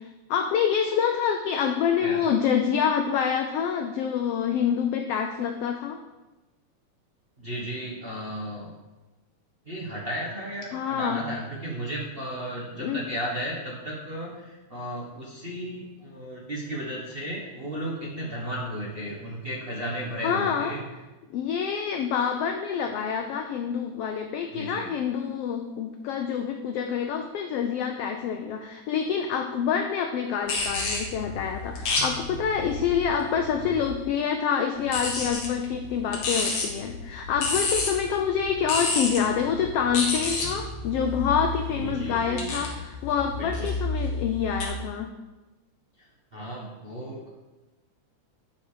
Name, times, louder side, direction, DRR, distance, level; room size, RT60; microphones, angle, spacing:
voice 1, 0.0-6.0 10.7-11.2 12.8-13.0 20.2-20.8 21.3-45.1, left 7 dB, 80° left, 4 dB, 1.4 m, -27 dB
voice 2, 7.4-8.7 9.6-20.8 24.5-24.9 41.7-42.6 43.4-43.7 46.0-47.3, equal, 35° right, -5 dB, 0.8 m, -34 dB
sound 1, 30.4-34.0 34.8-44.6, left 3 dB, 60° left, 2.8 m, -31 dB
11.5 x 5.9 x 5.0 m, 1.1 s
omnidirectional pair, 3.4 m